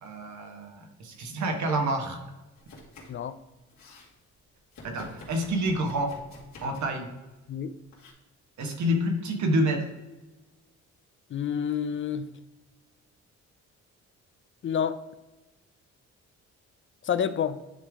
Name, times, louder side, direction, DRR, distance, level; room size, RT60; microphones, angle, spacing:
voice 1, 0.0-2.2 4.8-6.1 6.6-7.1 8.6-9.8, right 1 dB, 70° right, 3 dB, 1.5 m, -28 dB
Domestic sounds home sounds, 2.6-3.3 3.5-4.1 4.7-7.0 7.9-8.1, left 2 dB, 65° left, 2.2 m, -49 dB
voice 2, 11.3-12.3 14.6-15.0 17.0-17.6, left 8 dB, 40° left, 12 dB, 0.4 m, -28 dB
9.8 x 3.4 x 3.6 m, 1.1 s
cardioid pair, 90°, 30 cm